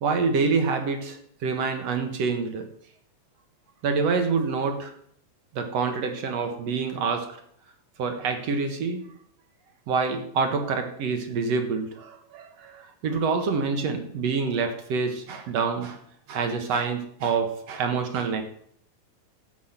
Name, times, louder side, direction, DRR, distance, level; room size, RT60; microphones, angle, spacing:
voice 1, 0.0-2.7 3.8-4.9 5.5-7.4 8.0-9.1 9.9-16.0 16.3-18.4, right 5 dB, 60° right, 6 dB, 2.2 m, -27 dB
12.5 x 8.4 x 5.8 m, 0.66 s
omnidirectional pair, 3.8 m